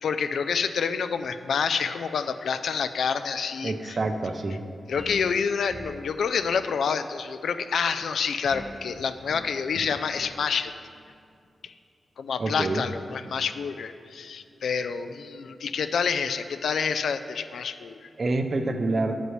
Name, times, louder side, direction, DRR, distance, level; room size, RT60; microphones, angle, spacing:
voice 1, 0.0-4.0 4.9-10.7 11.6-11.7 12.2-18.1, left 6 dB, 90° left, 11 dB, 0.3 m, -28 dB
voice 2, 3.6-4.6 12.4-12.9 18.2-19.2, right 2 dB, 35° right, 6 dB, 0.5 m, -27 dB
sound 1, 5.0-5.3 5.7-6.1 8.5-8.8 9.3-9.6 10.1-10.4, equal, 15° right, 1.0 m, -41 dB
9.4 x 7.9 x 3.1 m, 2.4 s
wide cardioid pair, 160°, 0 cm